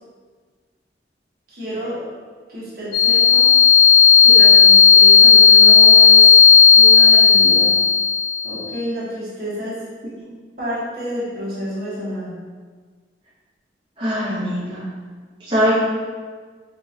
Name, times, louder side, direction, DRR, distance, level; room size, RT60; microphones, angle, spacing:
voice 1, 1.5-2.0 2.5-3.5 4.2-6.4 6.7-7.7 8.4-9.8 10.6-12.3, equal, 55° right, -9 dB, 1.4 m, -29 dB
sound 1, 2.9-8.6, left 6 dB, 90° left, 1.0 m, -10 dB
voice 2, 14.0-14.8 15.5-15.8, equal, 30° right, -12 dB, 1.0 m, -21 dB
5.1 x 2.5 x 2.8 m, 1.5 s
head